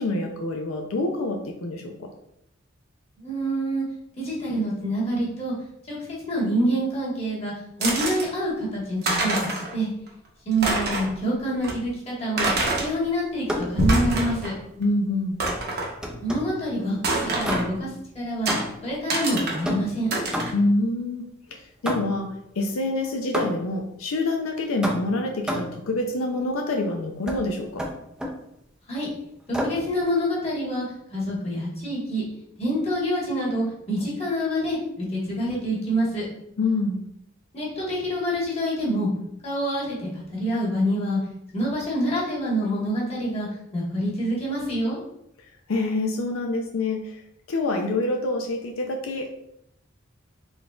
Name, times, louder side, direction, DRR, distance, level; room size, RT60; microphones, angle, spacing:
voice 1, 0.0-1.9 14.8-15.4 20.5-21.3 21.5-27.8 36.6-37.1 45.7-47.2 47.5-49.3, left 2 dB, 90° left, 2 dB, 0.5 m, -26 dB
voice 2, 3.2-3.8 4.2-5.5 5.9-6.0 6.2-7.5 7.8-9.9 10.4-12.5 12.8-14.5 16.2-17.0 17.4-18.6 18.8-20.1 28.9-29.1 29.5-30.8 31.1-32.2 32.6-36.2 37.5-39.1 39.4-41.2 41.5-45.0, equal, 30° left, -6 dB, 1.4 m, -26 dB
sound 1, 7.8-8.3 8.8-8.9 9.0-9.7 10.1-10.2 10.5-11.1 11.6-11.7 12.4-12.9 13.6-14.6 14.8-14.9 15.4-15.9 17.0-17.7 18.5-18.6 19.1-19.6 20.1-20.5, right 2 dB, 50° right, 0.8 m, -25 dB
sound 2, 12.4-12.8 13.5-13.9 15.5-16.6 17.4-18.0 18.5-18.9 19.6-20.8 21.9-22.3 23.3-23.8 24.8-25.8 27.3-27.4 27.8-28.4 29.5-29.9, equal, 5° right, 0.4 m, -30 dB
3.8 x 3.7 x 2.3 m, 0.77 s
head